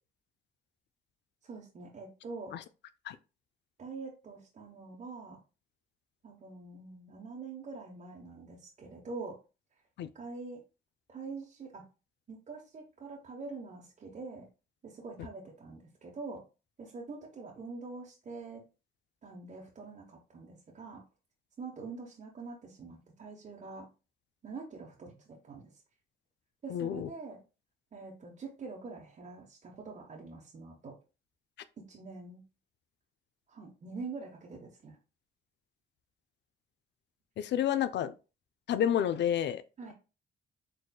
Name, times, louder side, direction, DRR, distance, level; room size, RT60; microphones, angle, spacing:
voice 1, 1.4-2.6 3.8-5.4 6.2-9.4 10.1-10.6 11.1-11.8 12.3-14.5 14.8-16.4 16.8-18.6 19.2-21.0 21.6-23.9 24.4-25.7 26.6-27.4 27.9-31.0 31.8-32.4 33.5-35.0 39.8-39.9, right 4 dB, 40° right, 0.9 m, -45 dB
voice 2, 26.7-27.1 37.4-38.1 38.7-39.6, left 10 dB, 60° left, 0.4 m, -29 dB
4.1 x 3.3 x 2.2 m
cardioid pair, 90°, 20 cm